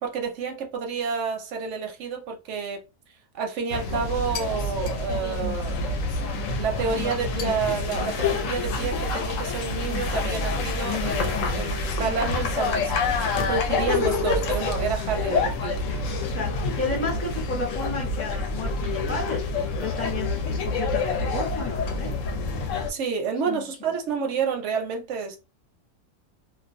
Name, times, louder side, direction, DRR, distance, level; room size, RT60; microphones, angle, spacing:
voice 1, 0.0-2.8 3.3-5.8 6.6-12.9 13.3-15.8 22.9-25.4, right 6 dB, 65° right, 0.7 m, -29 dB
sound 1, 3.7-22.9, left 3 dB, 70° left, 0.9 m, -27 dB
voice 2, 16.3-22.1 23.4-23.9, left 3 dB, 15° left, 0.4 m, -32 dB
2.4 x 2.1 x 2.5 m
omnidirectional pair, 1.6 m